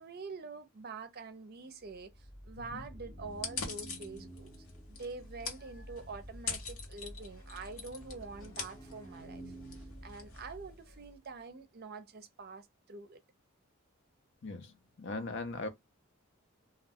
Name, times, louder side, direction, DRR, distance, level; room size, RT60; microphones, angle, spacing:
voice 1, 0.0-2.1 2.4-4.5 4.9-9.5 10.0-13.2, right 4 dB, 45° right, 0.5 m, -46 dB
sound 1, 1.8-11.2, right 1 dB, 15° left, 0.7 m, -50 dB
sound 2, 3.3-11.1, left 5 dB, 80° left, 0.9 m, -44 dB
voice 2, 15.0-15.7, left 3 dB, 55° left, 0.6 m, -38 dB
2.3 x 2.2 x 3.5 m
head